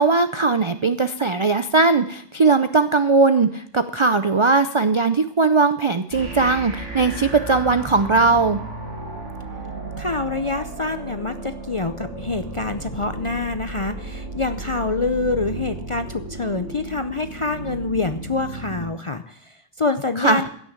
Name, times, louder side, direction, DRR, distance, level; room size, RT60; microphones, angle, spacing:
voice 1, 0.0-8.6 20.2-20.4, right 3 dB, 45° right, 11 dB, 0.3 m, -19 dB
sound 1, 6.1-18.9, right 3 dB, 70° right, 2.8 m, -34 dB
voice 2, 10.0-20.5, left 3 dB, 40° left, 9 dB, 0.5 m, -26 dB
15.5 x 6.4 x 8.0 m, 0.66 s
omnidirectional pair, 1.3 m